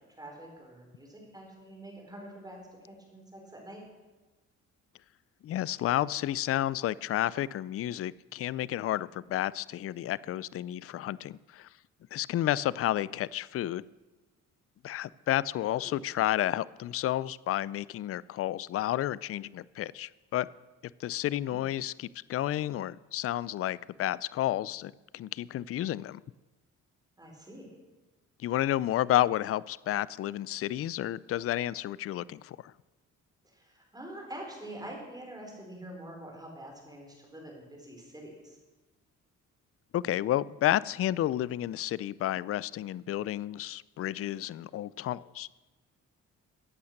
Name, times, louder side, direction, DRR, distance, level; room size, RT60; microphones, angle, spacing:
voice 1, 0.2-2.6 2.8-3.8 12.9-13.0 15.8-16.0 21.4-21.6 27.2-27.7 33.4-38.6, right 1 dB, 15° right, 0 dB, 4.2 m, -46 dB
voice 2, 5.4-11.7 12.1-13.9 14.8-20.5 21.0-26.2 28.4-32.7 39.9-45.5, left 13 dB, 50° left, 20 dB, 0.4 m, -31 dB
15.0 x 8.6 x 6.6 m, 1.2 s
cardioid pair, 90°, 30 cm